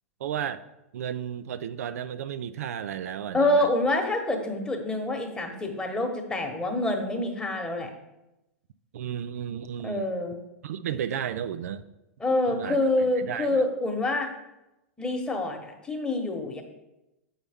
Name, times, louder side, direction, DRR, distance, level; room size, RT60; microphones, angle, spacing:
voice 1, 0.2-0.6 0.9-3.7 8.9-10.1 10.6-11.9 12.5-13.6, right 9 dB, 70° right, 13 dB, 0.3 m, -33 dB
voice 2, 3.3-7.9 9.8-10.4 12.2-14.3 15.0-16.6, left 2 dB, 10° left, 3 dB, 1.1 m, -26 dB
7.9 x 5.6 x 3.5 m, 0.93 s
hypercardioid pair, 110°, 8 cm